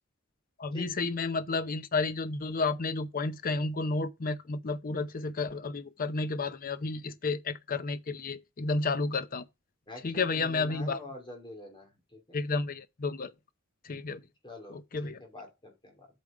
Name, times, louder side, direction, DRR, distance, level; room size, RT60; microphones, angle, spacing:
voice 1, 0.6-9.5 10.0-11.0 12.3-13.3 13.8-14.2 14.7-15.2, left 3 dB, 45° left, 0.6 m, -31 dB
voice 2, 9.9-12.2 14.4-16.1, left 1 dB, 25° left, 2.7 m, -46 dB
8.4 x 5.0 x 4.9 m
head